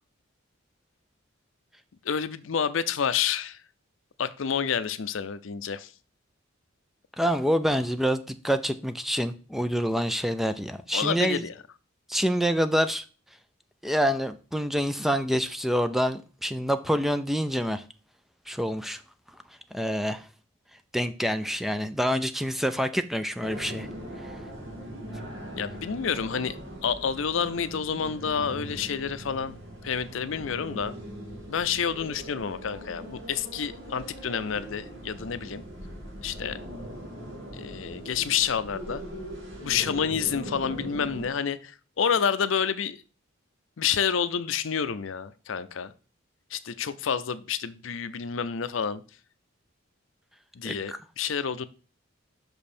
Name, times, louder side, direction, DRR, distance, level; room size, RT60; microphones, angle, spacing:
voice 1, 2.0-3.6 4.2-5.9 10.9-11.5 25.6-31.0 31.5-35.6 36.2-36.6 37.5-39.0 39.6-43.0 43.8-45.9 46.5-49.0 50.5-51.7, left 7 dB, 70° left, 0.5 m, -29 dB
voice 2, 7.2-11.4 12.1-13.0 13.8-17.8 18.5-19.0 19.7-20.3 20.9-23.9 50.6-51.0, equal, ahead, 0.4 m, -27 dB
sound 1, 23.4-41.3, equal, 60° right, 2.2 m, -40 dB
6.0 x 5.3 x 4.3 m
head